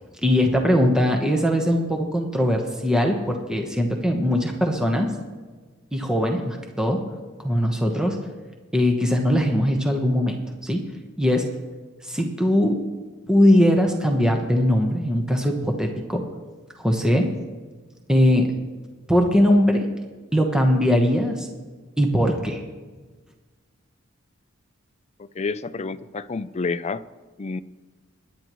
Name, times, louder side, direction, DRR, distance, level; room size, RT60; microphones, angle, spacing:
voice 1, 0.2-5.1 5.9-7.0 7.4-8.2 8.7-10.8 11.2-11.5 12.0-12.8 13.3-16.2 16.8-17.3 18.1-18.5 19.1-19.9 20.3-21.5 22.0-22.6, equal, 5° right, 1.1 m, -20 dB
voice 2, 25.4-27.0 27.4-27.6, left 4 dB, 30° left, 0.4 m, -29 dB
22.5 x 10.5 x 3.1 m
head